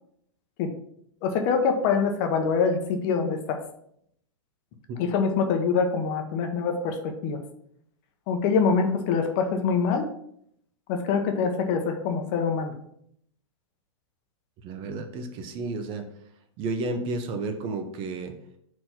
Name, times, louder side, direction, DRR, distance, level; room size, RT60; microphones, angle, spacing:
voice 1, 1.2-3.6 5.0-7.4 8.3-10.0 10.9-12.7, left 5 dB, 40° left, 5 dB, 1.0 m, -25 dB
voice 2, 14.6-16.1 16.6-18.4, right 3 dB, 35° right, 7 dB, 0.8 m, -32 dB
4.6 x 4.3 x 5.8 m, 0.70 s
hypercardioid pair, 145°, 16 cm